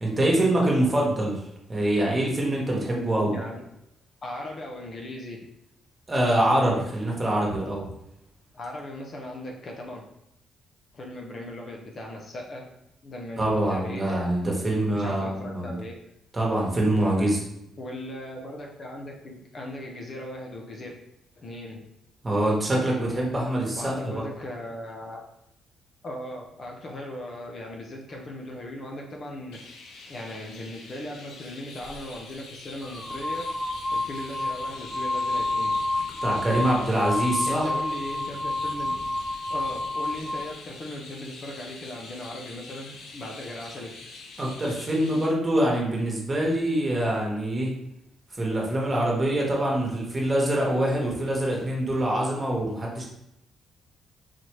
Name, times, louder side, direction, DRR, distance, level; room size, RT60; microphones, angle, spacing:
voice 1, 0.0-1.4 1.7-3.3 6.1-7.8 13.4-15.7 16.3-17.4 22.2-24.2 36.2-37.7 44.4-47.7 48.3-53.0, right 1 dB, 25° right, -3 dB, 1.3 m, -24 dB
voice 2, 3.2-3.6 4.2-5.5 8.5-10.0 10.9-12.7 13.0-14.2 14.9-15.9 17.8-21.0 21.4-21.8 23.8-25.2 26.0-29.6 30.1-33.5 33.9-35.7 37.5-39.0 39.5-44.0, left 1 dB, 45° left, 0 dB, 0.8 m, -38 dB
Chirp tweet, 29.5-45.3, left 3 dB, 85° left, 0.7 m, -45 dB
sound 1, 31.8-32.0 32.8-40.5, left 2 dB, 5° right, 0.4 m, -29 dB
4.1 x 3.1 x 3.1 m, 0.83 s
cardioid pair, 90°, 0 cm